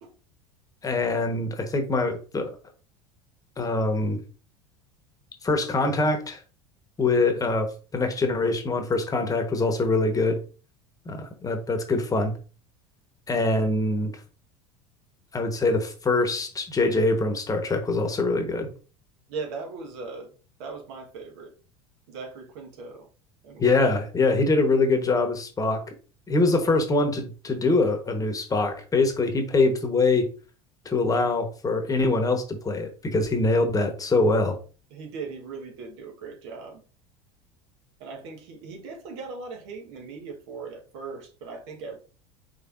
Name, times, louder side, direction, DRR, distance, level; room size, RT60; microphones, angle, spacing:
voice 1, 0.8-2.5 3.6-4.2 5.4-6.4 7.0-10.4 11.0-12.3 13.3-14.1 15.3-18.7 23.6-25.8 26.3-30.3 30.8-34.6, left 3 dB, 25° left, 1.2 m, -24 dB
voice 2, 19.3-20.3 20.6-21.5 22.1-23.1 23.4-23.7 34.9-36.8 38.0-42.0, right 4 dB, 65° right, 1.4 m, -39 dB
5.5 x 3.7 x 2.6 m
hypercardioid pair, 80°, 15 cm